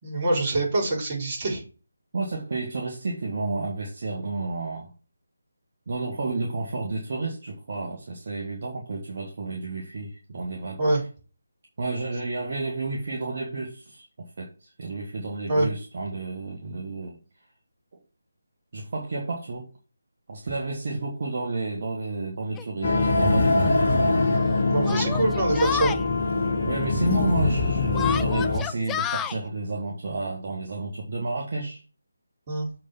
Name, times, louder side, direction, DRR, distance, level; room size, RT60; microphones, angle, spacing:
voice 1, 0.0-1.6 10.8-11.0 15.5-15.7 24.7-25.9 32.5-32.7, right 2 dB, 30° right, 4.7 m, -24 dB
voice 2, 2.1-4.9 5.9-10.8 11.8-17.2 18.7-19.7 20.3-24.1 26.6-31.8, right 3 dB, 45° right, 1.9 m, -31 dB
Yell, 22.6-22.7 23.6-23.7 24.8-26.0 27.9-29.4, left 9 dB, 10° left, 0.3 m, -30 dB
sound 1, 22.8-28.6, left 3 dB, 40° left, 1.6 m, -23 dB
7.4 x 4.7 x 5.8 m
figure-of-eight pair, 155°, 0 cm